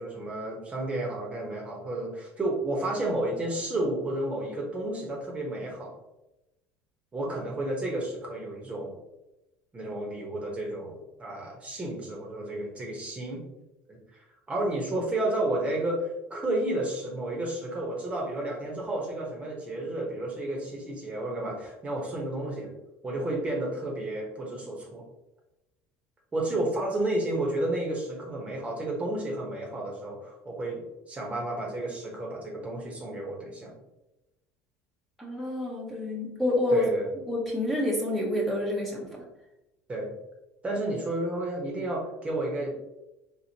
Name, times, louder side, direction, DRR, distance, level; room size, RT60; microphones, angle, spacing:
voice 1, 0.0-5.9 7.1-8.9 9.7-13.4 13.9-22.7 23.0-25.0 26.3-33.7 36.7-37.1 39.9-40.1 40.6-42.7, right 1 dB, 20° right, -1 dB, 1.0 m, -31 dB
voice 2, 35.2-36.9 37.3-39.2, left 1 dB, 5° left, -3 dB, 0.9 m, -28 dB
3.5 x 3.1 x 2.8 m, 0.95 s
supercardioid pair, 105°, 6 cm